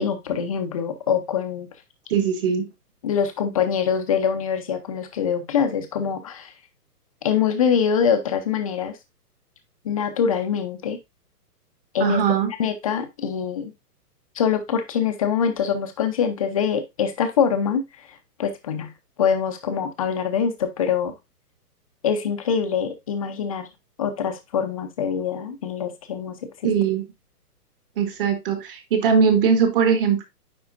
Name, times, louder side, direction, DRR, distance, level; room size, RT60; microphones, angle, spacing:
voice 1, 0.0-1.7 3.0-6.5 7.2-9.0 9.8-11.0 11.9-12.2 12.6-13.7 14.4-17.8 18.4-18.9 19.2-21.1 22.0-23.7 24.0-26.4 26.6-26.7, left 7 dB, 25° left, 7 dB, 0.6 m, -24 dB
voice 2, 2.1-2.7 12.0-12.5 26.6-27.0 28.0-30.2, right 6 dB, 35° right, 7 dB, 1.4 m, -20 dB
9.6 x 3.9 x 2.5 m, 0.22 s
hypercardioid pair, 155°, 47 cm